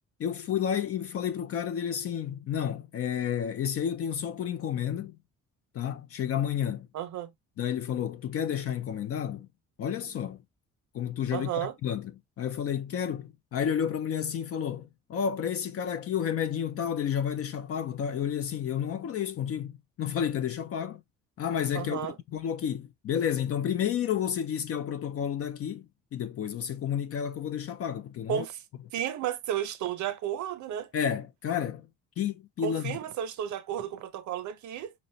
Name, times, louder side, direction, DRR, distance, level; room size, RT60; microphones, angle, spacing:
voice 1, 0.2-5.2 5.7-6.9 7.6-9.5 9.8-10.4 10.9-12.1 12.4-21.0 21.4-28.4 30.9-31.9 32.2-33.0, left 9 dB, 50° left, 0.4 m, -31 dB
voice 2, 6.9-7.3 11.3-11.8 21.7-22.2 28.3-28.6 28.9-30.9 32.6-34.9, right 10 dB, 70° right, 0.6 m, -33 dB
4.1 x 2.1 x 2.6 m
cardioid pair, 90°, 30 cm